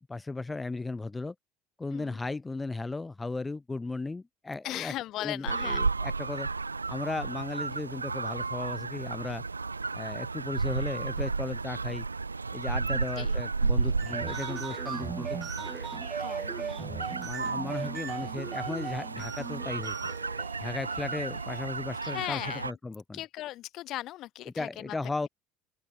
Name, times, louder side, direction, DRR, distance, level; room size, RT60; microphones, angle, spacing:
voice 1, 0.1-1.3 1.8-4.9 5.2-6.5 6.9-9.4 9.9-12.1 12.5-15.7 16.8-20.0 20.6-23.2 24.5-25.3, left 3 dB, 15° left, 3.0 m, -36 dB
voice 2, 4.6-5.8 12.9-13.4 16.2-17.0 22.0-22.8 23.1-25.3, left 15 dB, 50° left, 6.7 m, -38 dB
sound 1, 5.5-22.7, right 4 dB, 85° right, 1.0 m, -33 dB
sound 2, 13.9-22.1, right 7 dB, 35° right, 1.6 m, -39 dB
open air
figure-of-eight pair, 65°, 0 cm